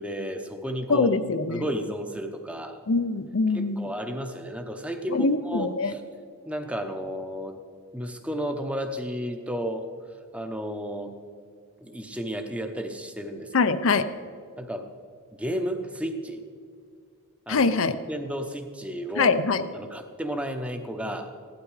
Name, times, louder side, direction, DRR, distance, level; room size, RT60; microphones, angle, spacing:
voice 1, 0.0-1.2 1.5-2.8 3.5-6.0 6.5-7.6 7.9-9.8 10.3-11.1 11.8-13.7 14.6-14.8 15.3-16.4 17.5-19.4 19.7-21.3, equal, 5° right, 6 dB, 0.8 m, -32 dB
voice 2, 0.9-1.6 2.9-3.9 5.1-5.9 13.5-14.0 17.5-18.0 19.2-19.6, left 4 dB, 65° left, 10 dB, 0.6 m, -23 dB
15.5 x 12.0 x 4.8 m, 2.2 s
head